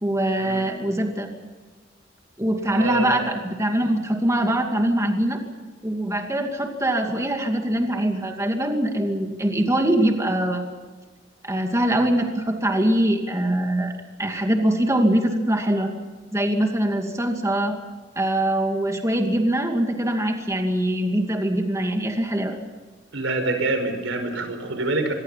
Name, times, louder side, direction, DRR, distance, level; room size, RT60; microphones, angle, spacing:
voice 1, 0.0-1.3 2.4-5.4 5.8-10.7 11.4-13.9 14.2-15.9 16.3-17.8 18.2-22.6, right 1 dB, 15° right, 3 dB, 2.4 m, -23 dB
voice 2, 2.8-3.2 23.1-25.1, right 2 dB, 90° right, 7 dB, 5.3 m, -26 dB
26.0 x 22.5 x 5.7 m, 1.4 s
head